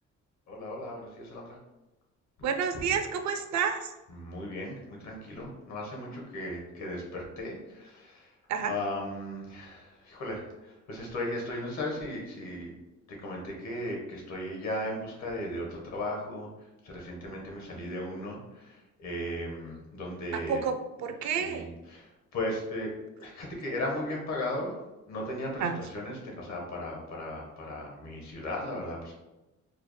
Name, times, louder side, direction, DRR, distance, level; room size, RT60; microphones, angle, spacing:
voice 1, 0.5-1.6 4.1-8.3 8.6-12.7 13.1-16.5 16.8-20.6 21.2-22.9 23.2-24.7 25.1-29.1, left 1 dB, 65° left, -1 dB, 1.3 m, -36 dB
voice 2, 2.4-3.8 8.5-8.7 20.5-20.7 21.0-21.6 25.6-25.8, right 7 dB, 65° right, 7 dB, 0.5 m, -29 dB
4.7 x 2.0 x 3.2 m, 1.0 s
cardioid pair, 90°, 30 cm